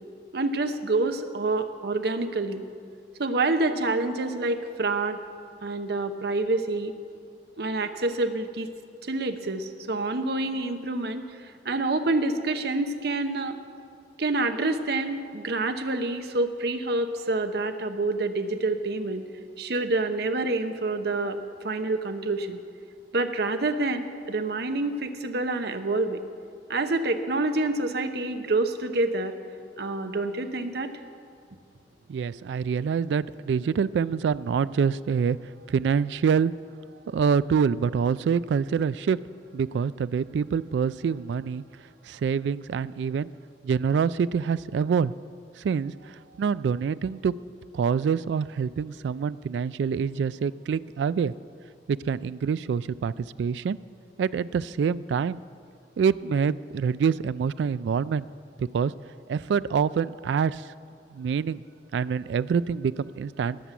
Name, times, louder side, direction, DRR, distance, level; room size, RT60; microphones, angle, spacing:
voice 1, 0.3-2.6 3.2-5.2 5.6-6.9 7.6-8.7 9.1-11.4 11.6-13.6 14.2-19.2 19.6-21.4 21.6-22.6 23.1-26.2 26.7-29.3 29.8-30.9, right 2 dB, 65° right, 7 dB, 0.9 m, -27 dB
voice 2, 32.1-35.4 35.7-36.5 37.1-39.2 39.5-41.6 42.0-43.3 43.6-45.1 45.6-47.3 47.7-51.3 51.9-53.8 54.2-55.4 56.0-58.3 58.6-58.9 59.3-60.7 61.1-61.6 61.9-63.6, right 6 dB, 80° right, 16 dB, 0.3 m, -26 dB
19.5 x 7.0 x 7.5 m, 2.3 s
head